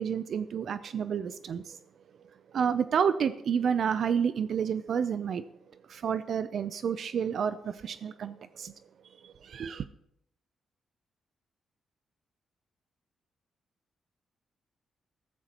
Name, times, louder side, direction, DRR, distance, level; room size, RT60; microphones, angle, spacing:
voice 1, 0.0-1.8 2.5-5.4 5.9-8.7 9.2-9.9, right 7 dB, 60° right, 0.4 m, -30 dB
14.5 x 13.5 x 3.0 m
cardioid pair, 120°, 0 cm